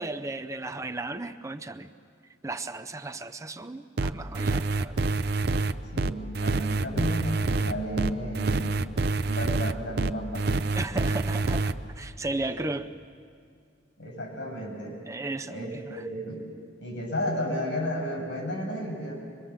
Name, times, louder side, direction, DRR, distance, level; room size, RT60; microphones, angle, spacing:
voice 1, 0.0-1.9 2.4-5.0 10.7-12.9 15.1-16.0, right 2 dB, 15° right, 8 dB, 0.6 m, -35 dB
sound 1, 4.0-11.7, right 3 dB, 60° right, 0.6 m, -26 dB
voice 2, 5.9-8.8 9.2-10.5 14.0-15.0 15.5-16.4 16.8-19.2, equal, 90° left, -1 dB, 7.1 m, -33 dB
24.5 x 22.0 x 7.2 m, 2.3 s
head